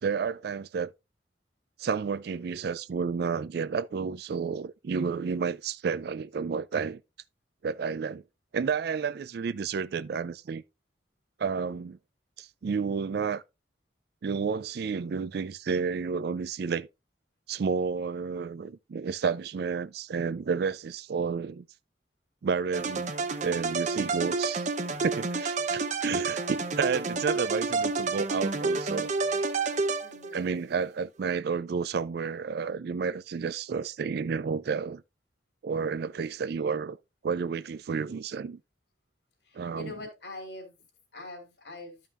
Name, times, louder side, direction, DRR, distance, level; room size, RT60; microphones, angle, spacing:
voice 1, 0.0-0.9 1.8-7.0 7.6-8.2 8.5-10.6 11.4-12.0 12.4-13.4 14.2-16.9 17.5-21.6 22.4-23.1 23.4-24.7 25.0-29.1 30.3-35.0 35.6-37.0 37.2-38.6 39.5-39.9, right 5 dB, 60° right, 0.4 m, -31 dB
sound 1, 22.7-30.5, right 3 dB, 40° right, 0.7 m, -29 dB
voice 2, 30.0-30.6 39.4-40.8 41.1-42.0, left 2 dB, 70° left, 2.9 m, -43 dB
12.5 x 5.6 x 2.4 m
head